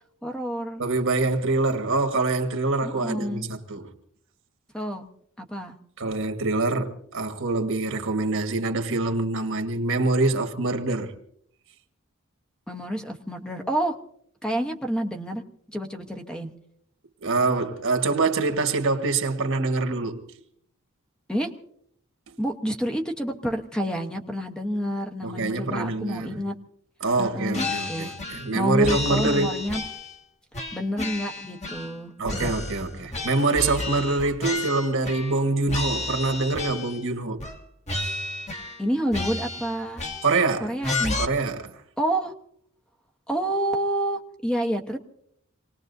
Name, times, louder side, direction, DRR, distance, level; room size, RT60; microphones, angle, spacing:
voice 1, 0.2-0.8 2.8-3.5 4.7-5.1 5.4-5.7 12.7-13.9 14.4-15.4 15.7-16.5 21.3-21.5 22.4-26.6 27.2-28.1 28.5-29.8 30.7-32.5 38.8-40.0 40.6-41.2 42.0-42.3 43.3-45.0, equal, 5° left, 1.0 m, -28 dB
voice 2, 0.8-3.9 6.0-11.1 17.2-20.3 25.2-26.4 27.0-29.6 32.2-37.4 40.2-40.7 41.2-41.8, right 3 dB, 65° right, 1.6 m, -25 dB
sound 1, 27.5-28.5 28.8-30.2 30.5-32.0 32.2-35.4 35.7-37.1 37.4-37.6 37.9-38.8 39.1-40.5 40.8-41.2, left 2 dB, 30° left, 1.7 m, -32 dB
27.0 x 19.5 x 2.7 m
head